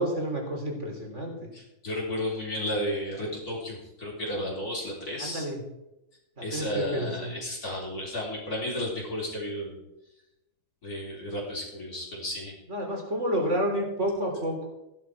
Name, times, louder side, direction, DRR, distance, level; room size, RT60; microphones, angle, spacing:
voice 1, 0.0-1.3 5.2-5.6 6.5-7.3 12.7-14.7, right 1 dB, 35° right, 1 dB, 3.8 m, -29 dB
voice 2, 1.5-5.4 6.4-9.8 10.8-12.5, left 1 dB, 50° left, -4 dB, 4.2 m, -33 dB
15.5 x 11.0 x 4.8 m, 0.91 s
omnidirectional pair, 2.1 m